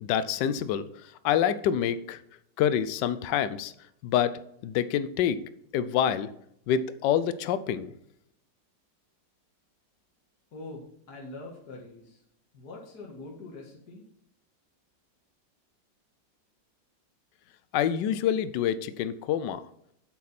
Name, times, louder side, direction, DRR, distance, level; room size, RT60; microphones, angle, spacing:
voice 1, 0.0-2.2 2.6-3.7 4.0-5.4 5.7-6.3 6.7-7.9 17.7-19.6, left 9 dB, 80° left, 14 dB, 1.3 m, -27 dB
voice 2, 10.5-12.2 12.5-14.1, left 2 dB, 60° left, -2 dB, 2.1 m, -44 dB
8.5 x 8.1 x 4.2 m, 0.73 s
omnidirectional pair, 1.9 m